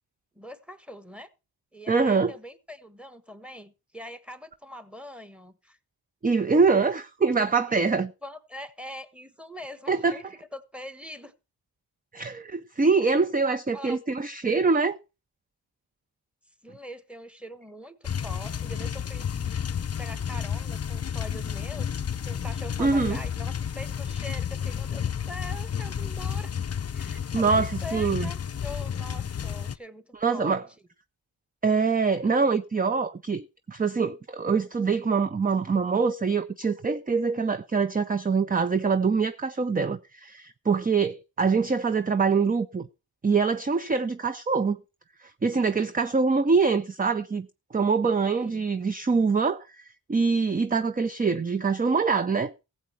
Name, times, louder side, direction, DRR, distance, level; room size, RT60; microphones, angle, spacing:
voice 1, 0.3-1.3 1.7-5.8 7.7-7.9 8.2-11.3 13.0-14.0 16.6-19.3 20.0-26.5 26.9-30.5 48.3-48.7, left 1 dB, ahead, 1.3 m, -43 dB
voice 2, 1.9-2.3 6.2-8.1 9.9-10.2 12.1-15.0 22.8-23.2 27.3-28.3 30.2-30.6 31.6-42.9 43.2-44.8 45.2-47.5 47.7-52.5, right 4 dB, 20° right, 0.5 m, -24 dB
sound 1, 18.0-29.8, left 8 dB, 35° left, 0.6 m, -31 dB
14.5 x 7.7 x 4.5 m
cardioid pair, 45°, 46 cm